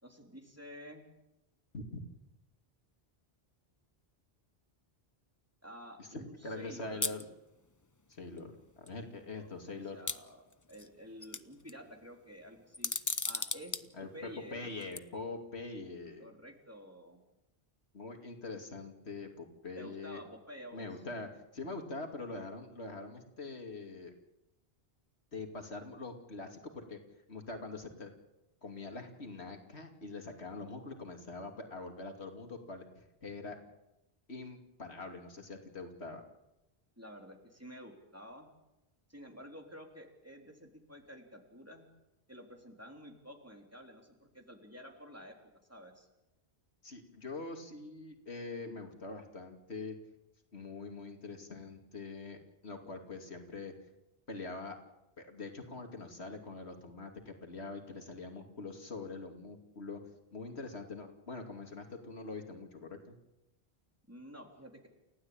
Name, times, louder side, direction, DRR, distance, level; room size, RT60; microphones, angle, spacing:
voice 1, 0.0-1.0 5.6-7.1 9.4-9.5 9.9-10.4 10.7-12.9 13.2-14.7 16.2-17.2 19.8-21.0 37.0-38.5 39.1-41.9 42.3-45.4 45.7-46.1 64.1-64.9, equal, 15° right, 2 dB, 3.7 m, -51 dB
voice 2, 6.0-7.3 8.1-10.0 13.9-16.3 17.9-20.2 20.7-24.1 25.3-27.0 27.3-28.1 28.6-33.6 34.3-36.2 46.8-50.0 50.5-53.7 54.3-54.8 55.2-60.0 60.3-63.2, left 3 dB, 90° left, 4 dB, 2.9 m, -44 dB
sound 1, 7.0-7.2 8.4-8.5 8.9-9.0 10.1-10.9 11.2-11.7 12.7-13.8 14.8-15.0, left 3 dB, 20° left, 0.7 m, -35 dB
29.0 x 16.0 x 8.9 m, 0.94 s
omnidirectional pair, 1.1 m